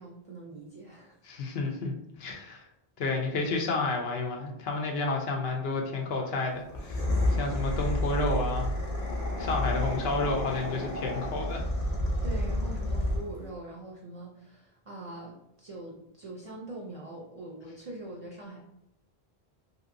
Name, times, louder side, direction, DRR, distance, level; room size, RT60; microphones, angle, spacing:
voice 1, 0.0-1.1 12.2-18.6, right 2 dB, 45° right, -2 dB, 0.5 m, -43 dB
voice 2, 1.2-2.7 3.0-8.7 9.4-11.6, left 3 dB, 80° left, 1 dB, 0.9 m, -31 dB
sound 1, 6.7-13.5, left 1 dB, 45° left, 0.7 m, -30 dB
2.9 x 2.7 x 2.5 m, 0.84 s
omnidirectional pair, 1.0 m